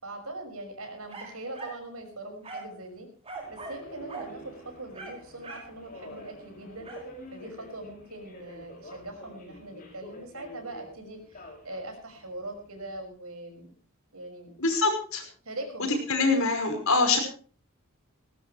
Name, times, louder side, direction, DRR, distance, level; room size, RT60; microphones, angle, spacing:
voice 1, 0.0-3.1 3.5-6.9 7.3-13.7 14.1-14.5 15.4-15.9, right 2 dB, 85° right, 4 dB, 6.0 m, -41 dB
sound 1, 1.1-1.8 2.4-2.8 3.2-3.8 4.1-4.3 4.9-5.7 6.8-7.1, right 3 dB, 30° right, 5.7 m, -41 dB
Subway metro underground, 3.3-13.1, equal, 40° left, 6.3 m, -48 dB
voice 2, 14.6-15.2 16.1-17.2, left 3 dB, 70° left, 3 dB, 5.5 m, -24 dB
19.5 x 17.5 x 3.3 m, 0.40 s
head